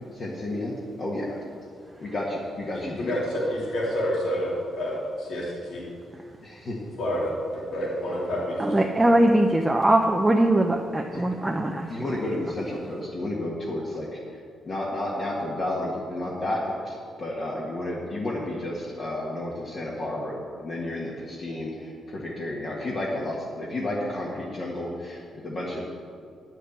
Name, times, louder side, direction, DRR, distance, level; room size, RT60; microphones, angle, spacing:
voice 1, 0.1-1.3 2.0-3.1 6.4-6.8 11.1-11.2 11.9-25.8, left 1 dB, 40° left, -5 dB, 1.6 m, -31 dB
voice 2, 2.7-5.8 7.0-9.1, equal, 70° left, -5 dB, 2.7 m, -29 dB
voice 3, 8.6-11.9, right 1 dB, 10° right, 2 dB, 0.5 m, -21 dB
10.0 x 6.5 x 8.0 m, 2.2 s
cardioid pair, 145°, 0 cm